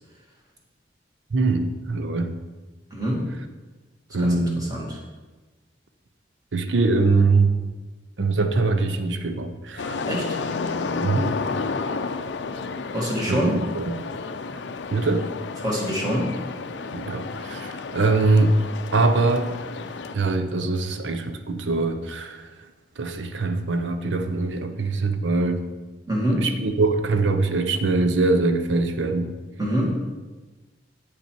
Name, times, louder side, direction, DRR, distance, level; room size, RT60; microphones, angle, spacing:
voice 1, 1.3-2.3 4.1-4.7 6.5-7.5 8.2-10.0 11.0-11.4 13.3-13.9 14.9-15.3 16.9-18.6 18.9-19.5 20.1-22.5 23.0-25.7 26.4-29.3, right 3 dB, 90° right, 8 dB, 0.7 m, -23 dB
voice 2, 2.9-3.3 4.2-5.0 10.1-10.4 12.9-13.6 15.6-16.3 26.1-26.5 29.6-30.0, equal, 20° right, -3 dB, 1.8 m, -25 dB
sound 1, 9.8-20.2, left 4 dB, 70° left, 0.5 m, -31 dB
8.3 x 5.5 x 4.5 m, 1.2 s
head